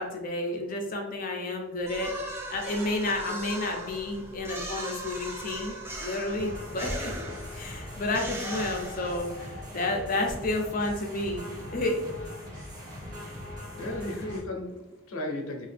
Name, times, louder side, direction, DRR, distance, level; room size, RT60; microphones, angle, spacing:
voice 1, 0.0-2.1 2.5-7.1 7.5-11.4 11.7-12.0, left 2 dB, 40° left, 2 dB, 0.5 m, -31 dB
sound 1, 1.8-9.5, right 1 dB, 10° right, 0.4 m, -39 dB
sound 2, 6.4-14.4, left 1 dB, 45° right, 1.0 m, -41 dB
voice 2, 13.8-15.7, left 1 dB, 90° left, 2 dB, 0.6 m, -35 dB
2.8 x 2.3 x 3.3 m, 0.95 s
head